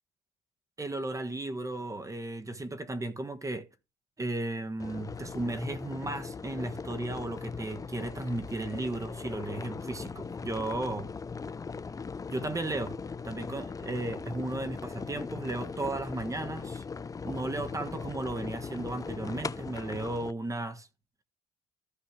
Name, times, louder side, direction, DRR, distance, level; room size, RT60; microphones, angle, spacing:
voice 1, 0.8-3.6 4.2-11.1 12.3-13.0 13.2-16.8 17.2-20.9, right 2 dB, 20° right, 1.3 m, -35 dB
sound 1, 4.8-20.3, left 5 dB, 20° left, 0.5 m, -39 dB
14.5 x 5.4 x 3.2 m
cardioid pair, 110°, 17 cm